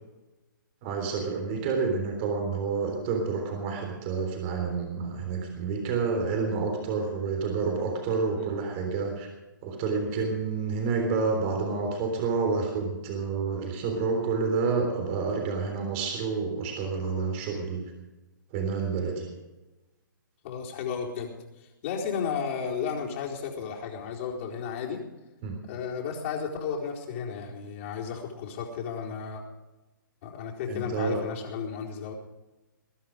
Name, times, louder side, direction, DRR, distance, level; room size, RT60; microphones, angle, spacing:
voice 1, 0.8-9.3 9.6-17.8 18.5-19.3 25.4-25.6 30.7-31.2, right 4 dB, 30° right, 3 dB, 3.5 m, -29 dB
voice 2, 20.4-25.0 25.6-29.4 30.2-32.1, left 6 dB, 40° left, -1 dB, 4.3 m, -33 dB
21.5 x 11.0 x 5.2 m, 1.1 s
hypercardioid pair, 145°, 11 cm